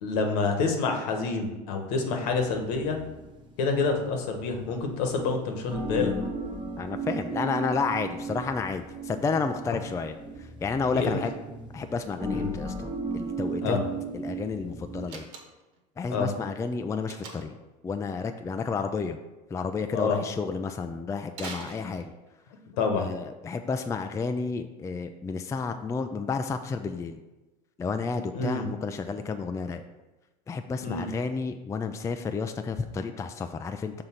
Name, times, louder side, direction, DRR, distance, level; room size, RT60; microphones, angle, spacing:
voice 1, 0.0-3.0 3.6-6.1 10.9-11.2 12.3-12.6 13.6-13.8 16.1-16.3 19.9-20.2 22.7-23.1 28.3-28.7 30.8-31.1, left 4 dB, 70° left, 4 dB, 1.3 m, -27 dB
sound 1, 2.2-15.1, right 2 dB, 25° right, 1.2 m, -36 dB
voice 2, 6.8-10.1 10.6-11.3 11.7-13.8 14.1-15.3 16.0-17.5 17.8-19.2 19.5-22.1 23.0-27.2 27.8-29.8 30.5-34.0, left 4 dB, 15° left, 7 dB, 0.4 m, -31 dB
Slam, 15.0-15.8 17.1-17.7 21.3-22.4, right 4 dB, 60° right, 1.4 m, -42 dB
6.3 x 3.8 x 5.6 m, 1.1 s
hypercardioid pair, 95°, 21 cm